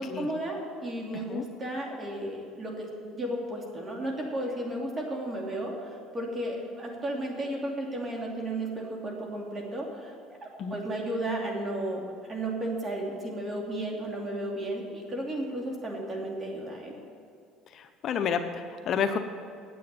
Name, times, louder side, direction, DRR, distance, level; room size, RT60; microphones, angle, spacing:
voice 1, 0.0-16.9, right 1 dB, 25° right, 0 dB, 2.7 m, -34 dB
voice 2, 17.7-19.2, left 7 dB, 50° left, 7 dB, 0.8 m, -30 dB
9.3 x 8.5 x 8.9 m, 2.3 s
cardioid pair, 120°, 0 cm